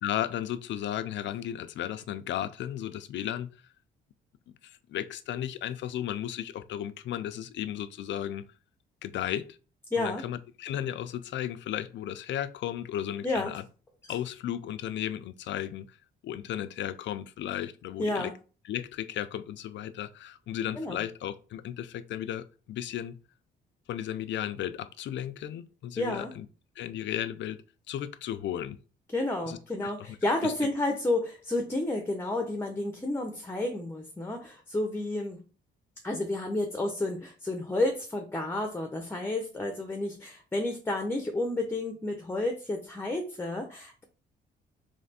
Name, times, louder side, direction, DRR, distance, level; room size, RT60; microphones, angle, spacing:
voice 1, 0.0-3.6 4.6-8.4 9.0-9.6 10.0-13.6 14.1-16.0 16.2-18.3 18.6-23.2 23.9-26.5 26.8-27.6 27.9-28.8 29.4-30.2 30.4-30.5, left 11 dB, 65° left, 0.5 m, -35 dB
voice 2, 9.9-10.2 13.2-13.5 18.0-18.3 20.8-21.0 26.0-26.3 29.1-35.4 36.0-44.0, left 2 dB, 10° left, 0.8 m, -31 dB
3.3 x 3.3 x 4.1 m
cardioid pair, 90°, 20 cm